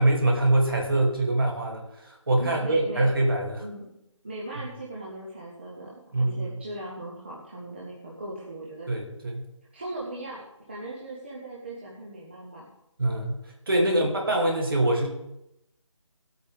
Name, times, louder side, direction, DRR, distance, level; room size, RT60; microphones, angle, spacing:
voice 1, 0.0-3.6 6.1-6.6 8.9-9.5 13.0-15.1, right 1 dB, 45° right, 0 dB, 2.7 m, -24 dB
voice 2, 2.4-3.0 3.6-3.9 4.2-8.9 9.7-10.4 10.7-12.7 13.8-14.1, right 1 dB, 20° right, -5 dB, 1.2 m, -39 dB
17.0 x 8.6 x 3.5 m, 0.86 s
figure-of-eight pair, 175°, 17 cm